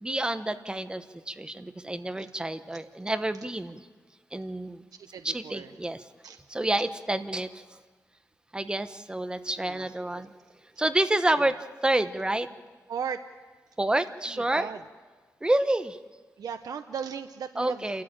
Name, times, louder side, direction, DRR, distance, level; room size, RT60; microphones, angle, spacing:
voice 1, 0.0-3.9 4.3-4.8 5.2-6.1 6.5-7.8 8.5-10.3 10.8-12.5 13.8-14.7 15.4-16.0 17.6-18.0, right 1 dB, 15° right, 10 dB, 1.0 m, -28 dB
voice 2, 5.0-5.7 6.2-6.4 9.6-9.9 10.1-10.2 11.4-11.5 12.9-13.2 14.3-14.8 16.4-18.0, right 7 dB, 75° right, 8 dB, 0.8 m, -37 dB
28.5 x 13.5 x 8.9 m, 1.4 s
wide cardioid pair, 110°, 6 cm